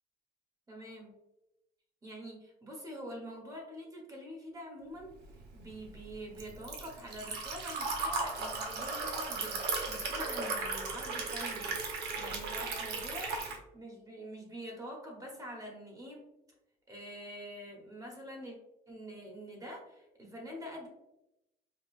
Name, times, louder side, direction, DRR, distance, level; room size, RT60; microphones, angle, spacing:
voice 1, 0.7-1.1 2.0-5.1 5.5-11.8 12.2-13.3 13.7-16.3 16.9-18.5 18.9-20.9, equal, 20° right, 0 dB, 1.2 m, -45 dB
Liquid, 5.3-13.6, right 3 dB, 80° right, 0.9 m, -36 dB
5.2 x 2.2 x 2.4 m, 0.88 s
cardioid pair, 110°, 17 cm